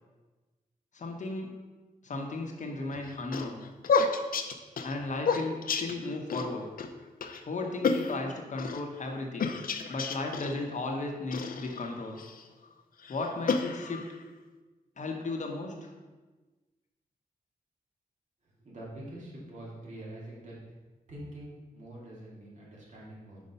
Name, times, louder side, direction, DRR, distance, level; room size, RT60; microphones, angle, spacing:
voice 1, 0.9-1.5 2.0-3.6 4.8-6.7 7.5-9.5 9.9-12.2 13.1-14.0 15.0-15.9, left 2 dB, 55° left, 2 dB, 1.0 m, -35 dB
sound 1, 2.9-6.5 6.8-6.9 7.2-7.4 7.8-8.8 9.4-10.5 11.3-12.4 13.0-14.2, left 5 dB, 70° left, 0.6 m, -30 dB
voice 2, 18.6-20.6 21.1-23.4, right 1 dB, 50° right, -6 dB, 2.4 m, -45 dB
5.3 x 5.1 x 5.5 m, 1.2 s
wide cardioid pair, 145°, 15 cm